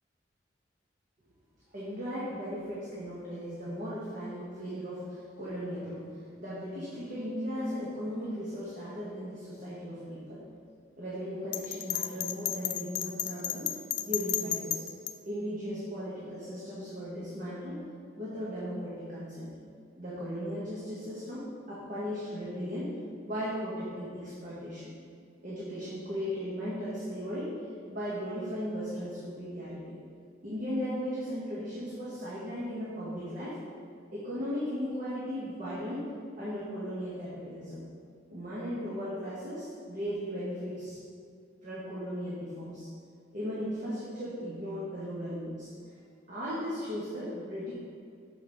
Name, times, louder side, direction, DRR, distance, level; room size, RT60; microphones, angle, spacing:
voice 1, 1.7-6.1 6.4-10.5 11.0-13.7 14.0-14.8 15.3-17.8 18.1-19.5 20.0-22.9 23.2-24.9 25.4-27.5 27.9-30.0 30.4-33.6 34.1-36.1 36.4-37.8 38.3-41.0 41.6-42.9 43.3-45.9 46.3-47.7, equal, 45° right, -8 dB, 1.3 m, -37 dB
Bell, 11.5-15.1, left 12 dB, 65° left, 0.4 m, -32 dB
7.1 x 5.3 x 3.9 m, 2.3 s
head